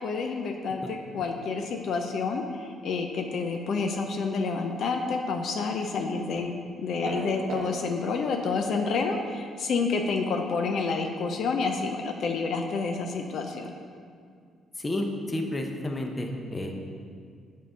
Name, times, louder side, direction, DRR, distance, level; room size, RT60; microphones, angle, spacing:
voice 1, 0.0-6.5 6.8-13.7, left 4 dB, 65° left, 3 dB, 0.5 m, -29 dB
sound 1, 7.0-7.7, right 5 dB, 60° right, 0.7 m, -34 dB
voice 2, 14.8-16.7, left 1 dB, 25° left, 3 dB, 0.7 m, -31 dB
7.4 x 3.7 x 5.5 m, 2.2 s
cardioid pair, 90°, 0 cm